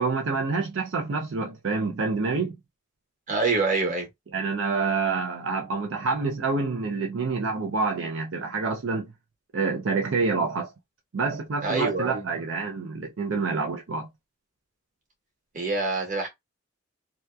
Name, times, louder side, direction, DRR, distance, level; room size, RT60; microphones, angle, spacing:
voice 1, 0.0-2.6 4.3-9.1 9.5-10.7 11.1-14.1, right 4 dB, 65° right, 0.5 m, -27 dB
voice 2, 3.3-4.1 11.6-12.3 15.5-16.3, right 3 dB, 40° right, 1.1 m, -26 dB
2.8 x 2.2 x 2.2 m
head